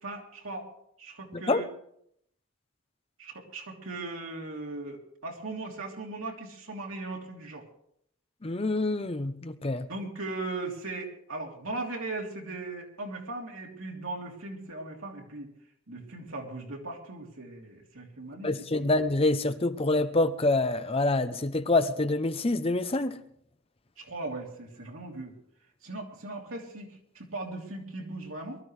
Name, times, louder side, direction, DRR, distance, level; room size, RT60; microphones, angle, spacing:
voice 1, 0.0-0.7 1.0-1.7 3.2-7.6 9.9-15.5 15.9-18.9 24.0-25.3 25.8-28.6, right 2 dB, 85° right, 0 dB, 3.1 m, -38 dB
voice 2, 8.4-9.9 18.4-23.2, left 2 dB, 30° left, 11 dB, 0.7 m, -26 dB
23.0 x 13.0 x 3.3 m, 0.71 s
head